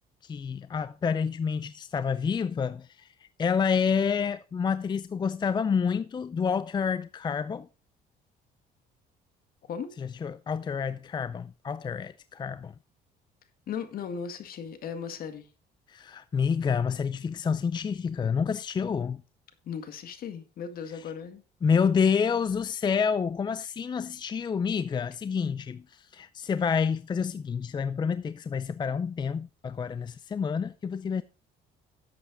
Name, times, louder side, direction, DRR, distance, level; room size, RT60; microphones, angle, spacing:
voice 1, 0.2-3.1 3.4-7.7 10.0-12.7 15.9-19.2 20.9-21.1 21.6-31.2, left 6 dB, 25° left, 0.5 m, -28 dB
voice 2, 13.7-15.5 19.7-21.4, left 7 dB, 60° left, 1.9 m, -37 dB
11.5 x 7.8 x 3.9 m
cardioid pair, 110°, 17 cm